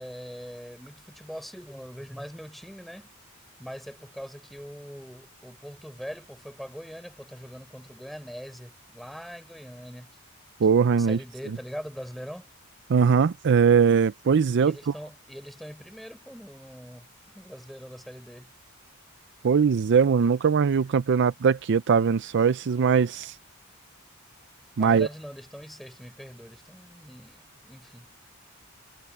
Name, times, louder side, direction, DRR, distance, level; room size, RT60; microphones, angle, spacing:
voice 1, 0.0-3.1 3.6-10.1 11.0-12.5 14.6-17.1 17.3-18.5 24.8-28.1, equal, ahead, 4.3 m, -42 dB
voice 2, 10.6-11.2 12.9-14.7 19.4-23.4 24.8-25.1, right 6 dB, 55° right, 0.4 m, -21 dB
head